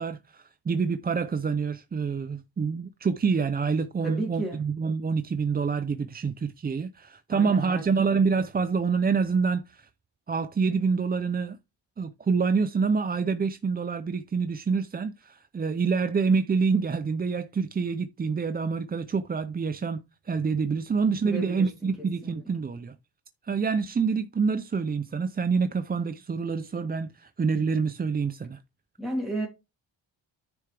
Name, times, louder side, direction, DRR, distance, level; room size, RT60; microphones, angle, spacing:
voice 1, 0.0-9.9 10.3-11.6 12.0-20.0 20.3-22.9 23.4-28.6, right 5 dB, 20° right, 0.4 m, -27 dB
voice 2, 4.0-4.6 7.3-8.2 21.2-22.3 29.0-29.5, right 2 dB, ahead, 2.8 m, -34 dB
9.5 x 6.5 x 3.3 m
wide cardioid pair, 125°, 46 cm